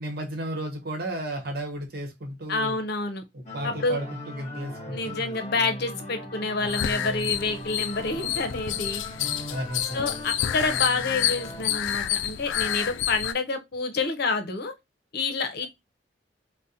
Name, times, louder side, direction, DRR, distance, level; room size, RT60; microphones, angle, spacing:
voice 1, 0.0-2.8 3.3-5.4 9.2-10.1, right 1 dB, 60° right, 1.0 m, -34 dB
voice 2, 2.5-3.2 3.6-4.0 4.9-9.0 9.9-14.7 15.1-15.7, left 3 dB, 60° left, 0.7 m, -28 dB
sound 1, 3.5-11.8, left 1 dB, 40° left, 1.0 m, -39 dB
sound 2, 6.6-13.3, left 11 dB, 90° left, 0.3 m, -29 dB
3.8 x 2.1 x 2.7 m
head